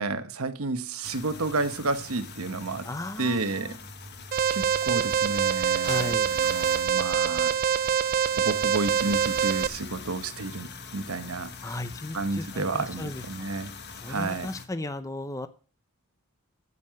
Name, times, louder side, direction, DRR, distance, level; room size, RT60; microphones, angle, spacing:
voice 1, 0.0-2.9 3.2-3.8 4.5-7.5 8.4-11.5 12.1-13.7 14.1-14.5, right 3 dB, 80° right, 1.1 m, -31 dB
sound 1, 1.0-14.7, left 4 dB, 50° left, 1.4 m, -43 dB
voice 2, 2.8-3.8 5.8-6.4 11.6-13.5 14.0-15.5, left 2 dB, 15° left, 0.6 m, -36 dB
Alarm, 4.3-9.7, right 8 dB, 45° right, 0.4 m, -25 dB
9.6 x 7.6 x 7.5 m
head